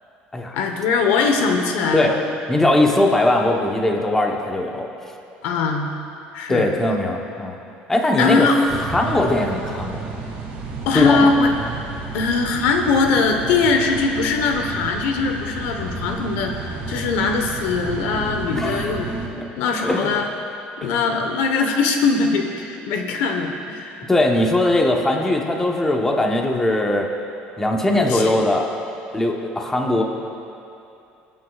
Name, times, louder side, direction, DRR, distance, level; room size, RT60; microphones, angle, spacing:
voice 1, 0.5-2.2 5.4-5.9 6.3-6.7 8.2-8.6 10.9-11.5 12.1-19.1 19.6-20.3 20.8-24.0 27.9-28.3, left 4 dB, 85° left, 4 dB, 1.1 m, -21 dB
voice 2, 2.5-4.9 6.5-7.6 7.9-10.2 10.9-11.3 18.6-18.9 19.4-19.5 19.8-20.1 20.8-21.0 24.1-27.1 27.6-28.7 29.1-30.0, left 1 dB, 10° left, 1 dB, 1.0 m, -20 dB
sound 1, 8.7-19.3, right 4 dB, 65° right, 3.0 m, -32 dB
24.0 x 9.3 x 2.4 m, 2.7 s
cardioid pair, 135°, 4 cm